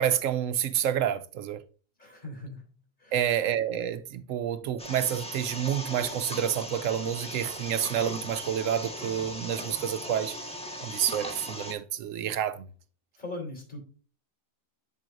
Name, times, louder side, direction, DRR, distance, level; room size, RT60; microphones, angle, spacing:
voice 1, 0.0-1.6 3.1-10.4 10.8-12.7, right 9 dB, 80° right, 1.0 m, -29 dB
voice 2, 2.0-2.6 3.0-3.2 13.2-13.8, left 2 dB, 35° left, 3.5 m, -39 dB
sound 1, 4.8-11.7, equal, 5° left, 1.4 m, -38 dB
8.3 x 7.5 x 2.5 m
omnidirectional pair, 1.4 m